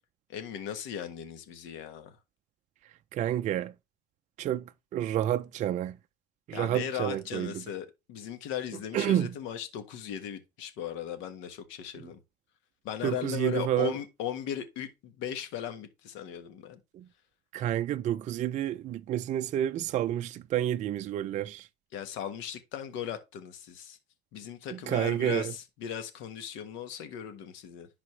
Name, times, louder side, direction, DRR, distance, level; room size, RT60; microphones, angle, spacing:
voice 1, 0.3-2.2 6.5-12.2 12.8-16.8 21.9-24.0 24.3-27.9, left 9 dB, 70° left, 1.5 m, -37 dB
voice 2, 3.1-3.7 4.4-4.6 4.9-6.0 6.5-7.6 8.9-9.3 13.0-13.9 16.9-17.0 17.5-21.7 24.7-25.5, right 11 dB, 35° right, 0.4 m, -29 dB
11.0 x 4.1 x 3.2 m
cardioid pair, 135°, 21 cm